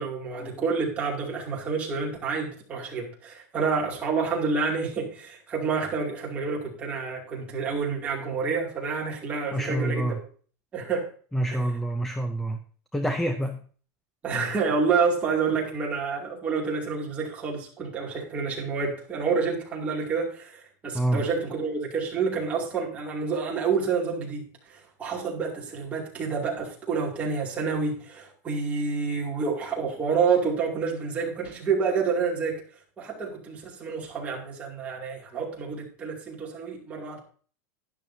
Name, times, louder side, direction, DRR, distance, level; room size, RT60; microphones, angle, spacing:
voice 1, 0.0-10.2 10.7-11.1 11.5-11.7 14.2-32.6 33.0-37.2, right 5 dB, 15° right, -3 dB, 2.5 m, -28 dB
voice 2, 9.5-10.2 11.3-12.6 12.9-13.6 20.9-21.2, right 1 dB, ahead, 8 dB, 0.5 m, -27 dB
12.0 x 10.5 x 2.7 m, 0.42 s
supercardioid pair, 180°, 9 cm